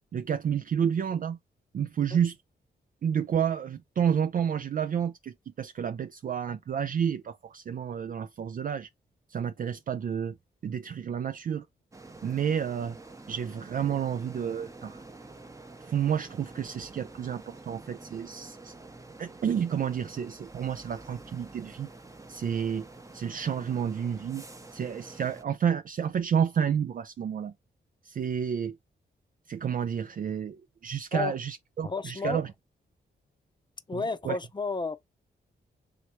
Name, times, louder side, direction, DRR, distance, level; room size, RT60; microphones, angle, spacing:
voice 1, 0.1-1.4 1.7-2.4 3.0-8.9 9.3-10.4 10.6-11.7 12.2-13.0 13.3-15.0 15.8-18.7 19.2-21.9 22.3-22.9 23.1-24.4 24.7-27.5 28.0-28.8 29.5-32.5 33.9-34.4, right 8 dB, 45° right, 0.4 m, -30 dB
sound 1, 11.9-25.4, right 2 dB, 15° right, 0.8 m, -48 dB
voice 2, 31.8-32.4 33.9-35.0, left 4 dB, 25° left, 0.6 m, -32 dB
3.2 x 3.0 x 4.2 m
cardioid pair, 70°, 19 cm